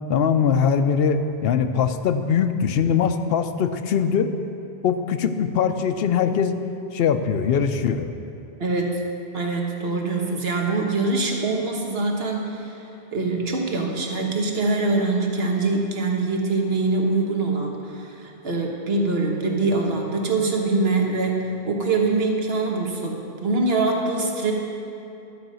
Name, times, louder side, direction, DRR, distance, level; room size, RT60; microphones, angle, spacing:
voice 1, 0.1-4.3 4.8-6.6 6.9-8.1, left 7 dB, 70° left, 9 dB, 0.8 m, -21 dB
voice 2, 8.6-9.0 9.3-12.8 13.1-24.5, right 3 dB, 65° right, 1 dB, 1.5 m, -24 dB
12.0 x 5.2 x 7.6 m, 2.8 s
omnidirectional pair, 1.1 m